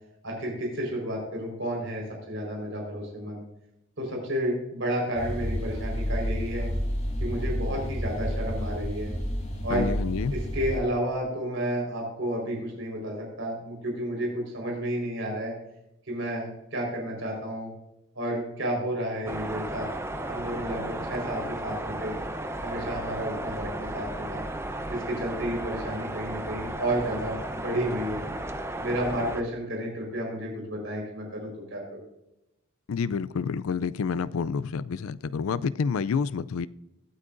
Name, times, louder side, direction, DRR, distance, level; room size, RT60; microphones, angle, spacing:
voice 1, 0.2-3.4 4.0-6.7 7.2-9.1 9.6-9.9 10.3-15.5 16.1-17.7 18.1-19.9 20.3-22.2 22.6-24.4 24.9-28.2 28.8-32.0, equal, 60° right, -1 dB, 4.4 m, -31 dB
sound 1, 5.1-10.8, equal, 35° left, 1.9 m, -30 dB
voice 2, 9.7-10.3 32.9-36.7, left 5 dB, 90° left, 17 dB, 0.4 m, -28 dB
sound 2, 19.2-29.4, right 1 dB, 10° right, 0.6 m, -34 dB
21.0 x 8.3 x 2.6 m, 0.89 s
head